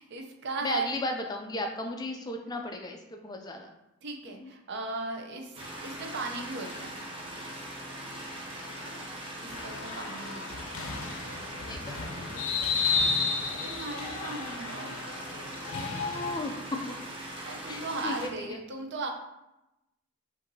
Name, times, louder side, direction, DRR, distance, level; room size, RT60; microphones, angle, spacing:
voice 1, 0.0-0.9 4.0-7.0 9.4-10.6 13.5-15.0 17.4-19.1, right 3 dB, 55° right, 3 dB, 0.6 m, -37 dB
voice 2, 0.6-3.7 4.4-4.5 8.8-9.2 11.6-12.5 15.7-17.0 17.7-18.6, left 2 dB, 20° left, 3 dB, 0.3 m, -36 dB
sound 1, 5.5-18.3, right 1 dB, 25° right, 0.9 m, -41 dB
sound 2, 9.5-16.4, left 4 dB, 80° left, 0.6 m, -32 dB
5.6 x 2.6 x 2.7 m, 0.91 s
head